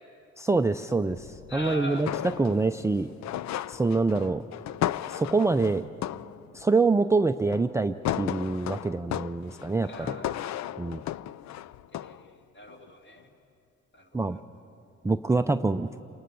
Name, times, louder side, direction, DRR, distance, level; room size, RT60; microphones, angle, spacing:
voice 1, 0.4-2.1 2.4-3.1 3.7-4.4 5.1-5.8 6.5-10.2 10.8-11.0 14.1-14.4 15.0-15.9, right 3 dB, 10° right, 7 dB, 0.4 m, -25 dB
sound 1, 1.1-3.0 3.2-6.6 7.5-7.8 8.0-12.3 12.7-12.9, left 12 dB, 65° left, 0.5 m, -35 dB
voice 2, 1.5-2.0 9.8-10.6 12.0-13.3 13.9-14.4, equal, 40° left, 2 dB, 2.8 m, -42 dB
28.5 x 19.5 x 6.8 m, 2.6 s
cardioid pair, 90°, 30 cm